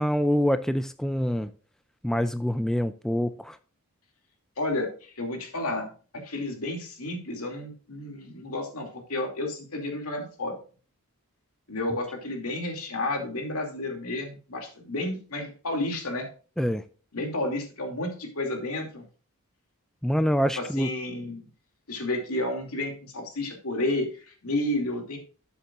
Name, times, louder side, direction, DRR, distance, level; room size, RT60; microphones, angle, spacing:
voice 1, 0.0-1.5 2.0-3.6 16.6-16.8 20.0-20.9, equal, ahead, 0.3 m, -25 dB
voice 2, 4.6-10.6 11.7-16.3 17.1-19.0 20.6-21.5 21.9-25.2, left 2 dB, 75° left, 2.5 m, -31 dB
12.5 x 7.2 x 2.5 m
head